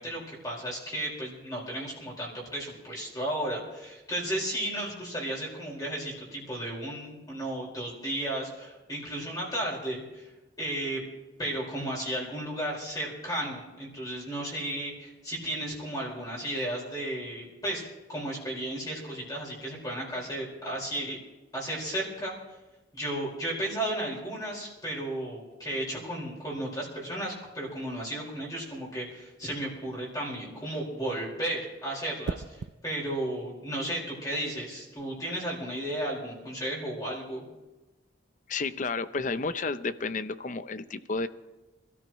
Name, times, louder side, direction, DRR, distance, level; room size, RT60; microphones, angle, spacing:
voice 1, 0.0-10.3 10.6-11.0 11.4-17.8 18.1-21.2 21.5-22.3 22.9-32.4 32.8-37.4, right 1 dB, 20° left, -4 dB, 4.8 m, -34 dB
sound 1, 32.2-32.8 34.8-35.0, right 4 dB, 80° right, 0.4 m, -37 dB
voice 2, 38.5-41.3, left 3 dB, 40° left, 13 dB, 0.6 m, -31 dB
26.5 x 14.0 x 3.1 m, 1.1 s
head